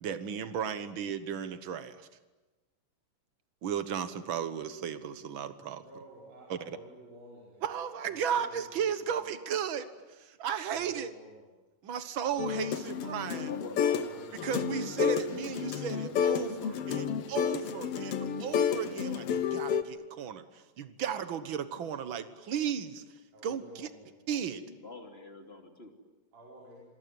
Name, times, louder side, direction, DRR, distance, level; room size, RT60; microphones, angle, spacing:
voice 1, 0.0-2.1 3.6-5.8 6.5-6.8 7.6-11.1 11.8-13.5 14.4-23.9 24.3-24.6, right 8 dB, 60° right, 11 dB, 1.3 m, -35 dB
voice 2, 5.8-9.3 10.7-11.5 13.9-14.7 23.3-24.2 26.3-26.8, right 1 dB, 85° right, -3 dB, 6.8 m, -52 dB
sound 1, 12.4-14.1 14.4-19.8, left 7 dB, 60° left, 1.6 m, -31 dB
voice 3, 13.4-14.6 16.3-17.2 24.7-25.9, left 3 dB, 20° left, 4 dB, 2.8 m, -46 dB
27.0 x 23.0 x 9.5 m, 1.1 s
omnidirectional pair, 3.9 m